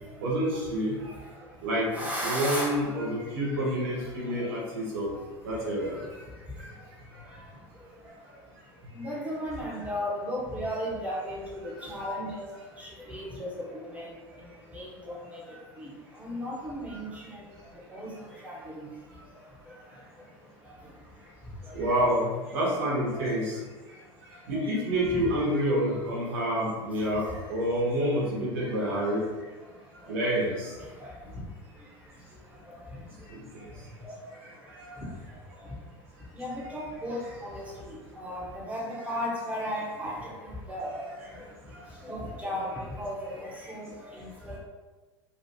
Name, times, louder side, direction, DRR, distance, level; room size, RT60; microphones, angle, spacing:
voice 1, 0.2-1.1 1.6-1.9 2.2-5.1 5.4-6.2 6.6-6.7 9.8-9.9 11.6-11.9 16.9-17.0 21.7-23.6 24.5-29.2 30.1-30.8 33.3-33.7 34.4-35.0 41.7-41.8, equal, 60° right, -5 dB, 1.3 m, -28 dB
voice 2, 1.9-2.8 8.9-12.5 12.8-14.2 14.7-15.4 15.8-17.5 17.9-18.9 19.7-20.0 21.6-21.7 22.7-22.8 23.1-23.3 24.5-24.7 25.1-25.2 27.2-27.4 28.6-28.8 30.1-30.2 30.8-31.2 32.6-33.0 34.0-34.2 35.6-35.7 36.3-41.5 42.0-44.6, equal, 10° right, -5 dB, 1.0 m, -36 dB
3.1 x 2.3 x 2.8 m, 1.3 s
figure-of-eight pair, 80°, 15 cm